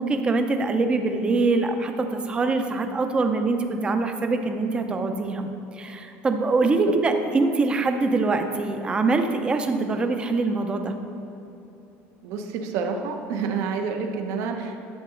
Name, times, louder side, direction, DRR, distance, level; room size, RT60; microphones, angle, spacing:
voice 1, 0.0-5.5 5.8-10.9, right 3 dB, 20° right, 6 dB, 0.6 m, -24 dB
voice 2, 12.2-14.9, right 5 dB, 65° right, 4 dB, 0.9 m, -29 dB
11.0 x 7.8 x 3.8 m, 2.9 s
cardioid pair, 155°, 6 cm